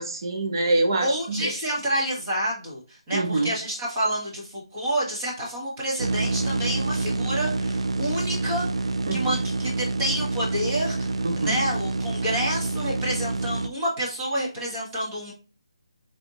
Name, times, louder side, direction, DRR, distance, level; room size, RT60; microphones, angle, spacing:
voice 1, 0.0-1.5 3.1-3.5 9.1-9.4 11.2-11.6, right 2 dB, 40° right, 3 dB, 0.9 m, -25 dB
voice 2, 1.0-15.3, right 1 dB, 20° right, -5 dB, 1.5 m, -29 dB
sound 1, 6.0-13.7, right 2 dB, 75° right, 0.4 m, -27 dB
4.4 x 3.5 x 2.6 m, 0.34 s
hypercardioid pair, 170°, 3 cm